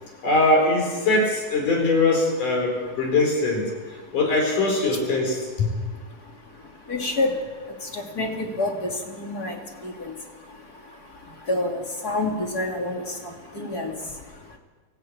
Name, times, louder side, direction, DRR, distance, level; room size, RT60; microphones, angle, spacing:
voice 1, 0.2-3.7 4.1-5.7, left 2 dB, 65° left, 2 dB, 5.8 m, -21 dB
voice 2, 6.9-7.4 7.9-9.6 9.8-9.9 11.5-13.0 13.5-13.9, left 2 dB, 30° left, 1 dB, 2.7 m, -27 dB
24.5 x 15.0 x 8.7 m, 1.4 s
omnidirectional pair, 3.9 m